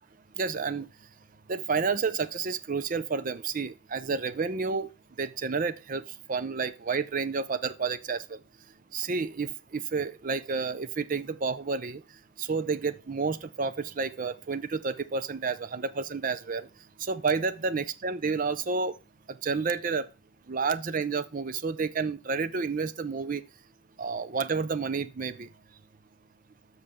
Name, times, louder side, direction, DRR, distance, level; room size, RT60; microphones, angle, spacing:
voice 1, 0.4-0.9 1.5-4.9 5.2-6.0 6.3-8.2 8.9-12.0 12.4-16.7 17.0-18.9 19.4-20.1 20.5-23.4 24.0-25.5, right 4 dB, 40° right, 0.5 m, -30 dB
13.0 x 5.4 x 3.6 m
head